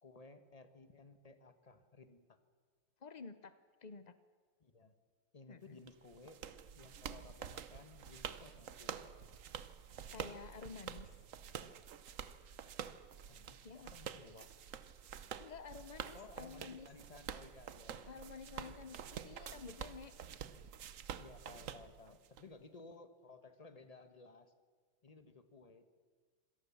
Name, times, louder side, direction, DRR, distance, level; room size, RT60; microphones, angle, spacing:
voice 1, 0.0-2.4 4.6-4.9 5.3-6.4 6.7-9.0 13.3-14.5 16.1-18.9 21.2-24.5 25.0-25.8, left 3 dB, 20° left, 9 dB, 1.2 m, -58 dB
voice 2, 3.0-4.1 5.5-5.8 10.1-11.2 13.6-13.9 15.4-16.9 18.1-20.1, left 5 dB, 70° left, 12 dB, 0.4 m, -51 dB
sound 1, 5.9-22.4, right 8 dB, 55° right, 1.0 m, -48 dB
26.0 x 18.0 x 7.2 m, 1.5 s
omnidirectional pair, 2.1 m